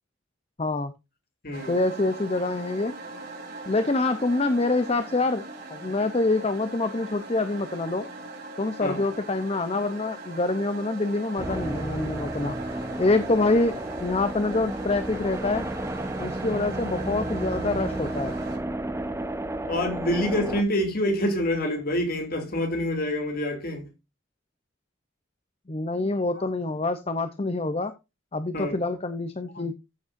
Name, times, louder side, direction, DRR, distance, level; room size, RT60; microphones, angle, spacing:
voice 1, 0.6-0.9 1.7-2.9 3.7-5.4 5.7-8.0 8.6-12.6 13.0-15.6 16.2-18.4 25.7-27.9 28.3-29.7, left 2 dB, 30° left, 0.7 m, -26 dB
voice 2, 1.4-1.8 8.8-9.0 12.4-12.5 16.2-16.6 19.7-23.9 26.3-26.4 28.5-28.8, left 1 dB, 50° left, 2.9 m, -27 dB
sound 1, 1.5-18.6, right 2 dB, 50° right, 4.7 m, -40 dB
sound 2, 11.4-20.6, right 1 dB, 15° right, 0.9 m, -32 dB
14.5 x 7.2 x 2.6 m
head